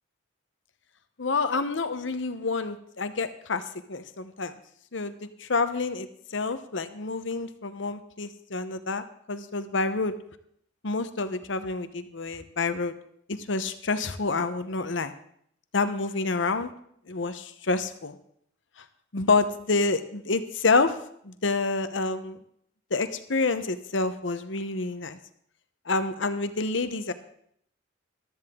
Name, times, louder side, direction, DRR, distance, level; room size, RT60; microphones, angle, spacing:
voice 1, 1.2-3.6 3.9-4.5 4.9-10.1 10.8-12.9 13.3-15.1 15.7-16.7 17.1-18.2 19.1-20.9 21.2-22.4 22.9-25.2 25.9-27.1, left 3 dB, 70° left, 11 dB, 0.9 m, -28 dB
14.5 x 12.5 x 3.7 m, 0.67 s
head